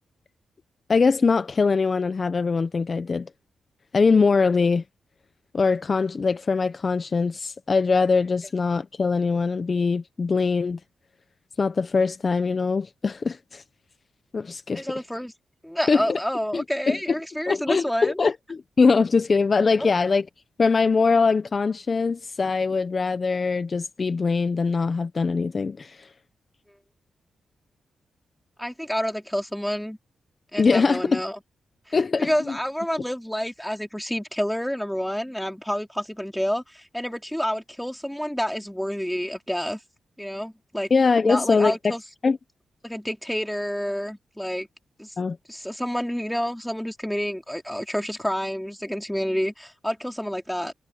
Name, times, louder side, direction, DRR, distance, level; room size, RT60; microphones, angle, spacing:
voice 1, 0.9-3.3 3.9-4.8 5.5-10.8 11.6-13.6 14.3-14.8 15.9-16.2 16.5-17.0 17.5-20.3 20.6-26.1 30.6-31.2 31.9-32.3 40.9-41.9 42.2-42.4 45.2-45.4, left 4 dB, 45° left, 1.1 m, -22 dB
voice 2, 14.7-15.3 15.6-18.2 28.6-30.0 30.5-31.4 31.9-39.8 40.2-40.9 41.2-42.0 42.8-44.7 45.0-45.1 45.5-50.7, equal, 5° left, 3.2 m, -29 dB
cardioid pair, 60°, 0 cm